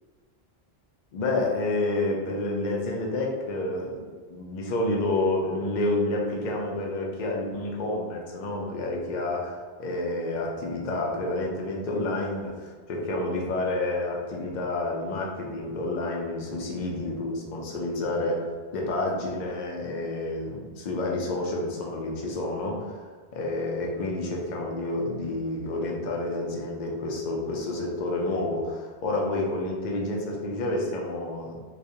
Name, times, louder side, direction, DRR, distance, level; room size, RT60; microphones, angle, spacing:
voice 1, 1.1-18.4 18.7-23.1 23.3-31.5, left 2 dB, 55° left, -1 dB, 0.6 m, -29 dB
2.3 x 2.1 x 2.7 m, 1.5 s
omnidirectional pair, 1.0 m